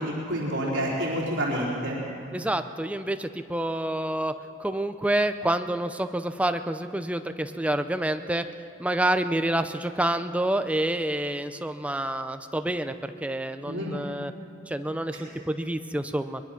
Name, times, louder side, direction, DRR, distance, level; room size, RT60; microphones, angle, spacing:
voice 1, 0.0-2.0 13.6-13.9 15.1-15.2, equal, 70° right, -4 dB, 3.9 m, -28 dB
voice 2, 2.3-8.4 8.8-14.3 14.7-16.4, right 1 dB, 5° right, 9 dB, 0.6 m, -28 dB
22.5 x 21.5 x 5.9 m, 2.8 s
head